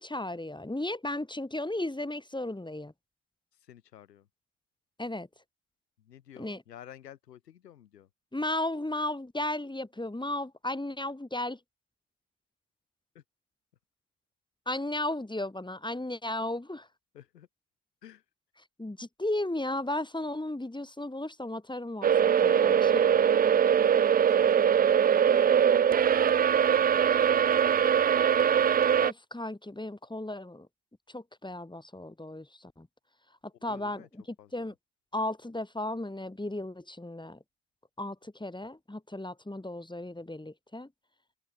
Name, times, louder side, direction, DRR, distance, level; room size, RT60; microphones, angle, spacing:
voice 1, 0.0-2.9 5.0-5.3 6.4-6.6 8.3-11.6 14.7-16.9 18.8-23.0 28.6-28.7 29.0-30.7 31.1-32.9 33.6-34.0 34.5-34.7 35.1-37.4 38.0-40.9, left 1 dB, 10° left, 2.6 m, -35 dB
voice 2, 3.5-4.3 6.0-8.1 13.1-13.2 17.1-17.5 18.0-18.2 22.3-27.9 33.5-34.1 34.4-34.7, left 10 dB, 85° left, 6.6 m, -53 dB
sound 1, 22.0-29.1, right 8 dB, 20° right, 0.4 m, -22 dB
figure-of-eight pair, 40°, 47 cm